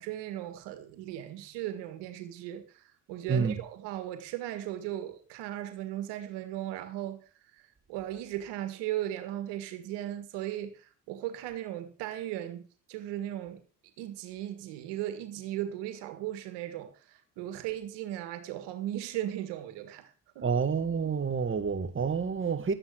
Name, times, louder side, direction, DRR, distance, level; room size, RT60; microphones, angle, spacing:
voice 1, 0.0-7.2 7.9-13.6 14.0-20.5, right 12 dB, 80° right, 1.9 m, -37 dB
voice 2, 3.3-3.6 20.4-22.7, right 6 dB, 30° right, 2.0 m, -28 dB
12.5 x 8.9 x 6.5 m
supercardioid pair, 70°, 42 cm